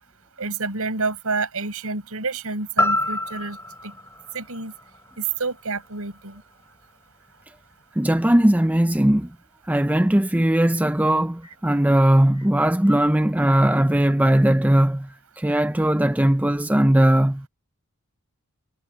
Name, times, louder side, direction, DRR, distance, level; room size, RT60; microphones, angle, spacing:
voice 1, 0.4-3.6 3.8-3.9 4.3-4.7 5.2-6.4 11.4-11.6 12.3-12.5, right 4 dB, 75° right, 5.7 m, -29 dB
sound 1, 2.8-6.8 7.3-7.4, left 1 dB, 10° left, 4.8 m, -28 dB
voice 2, 8.0-9.3 9.7-17.5, right 1 dB, 5° right, 0.5 m, -19 dB
head